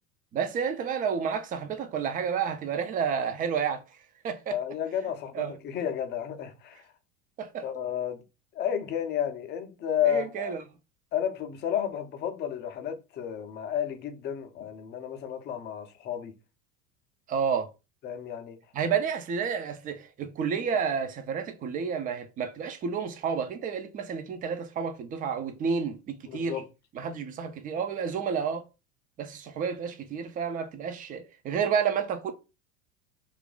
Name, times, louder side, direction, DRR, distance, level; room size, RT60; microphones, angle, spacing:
voice 1, 0.3-3.8 4.2-4.5 5.3-5.5 7.4-7.7 10.0-10.6 17.3-17.7 18.7-26.6 26.9-28.6 29.2-32.3, right 6 dB, 20° right, 0.5 m, -30 dB
voice 2, 4.5-6.8 7.6-8.2 8.5-10.5 11.1-16.3 18.0-18.6 26.3-26.6, left 9 dB, 25° left, 0.6 m, -32 dB
2.9 x 2.5 x 3.7 m
figure-of-eight pair, 75°, 41 cm